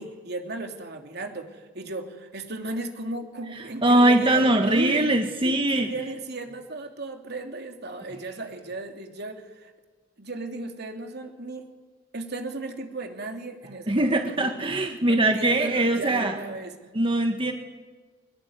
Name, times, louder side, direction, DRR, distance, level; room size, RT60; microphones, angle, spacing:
voice 1, 0.0-5.2 5.4-9.7 10.2-11.7 12.1-14.7 15.0-16.7, right 2 dB, 60° right, 4 dB, 3.2 m, -35 dB
voice 2, 3.8-5.9 13.9-16.4 16.9-17.5, right 1 dB, 30° right, 4 dB, 1.6 m, -21 dB
24.0 x 21.5 x 9.6 m, 1.4 s
head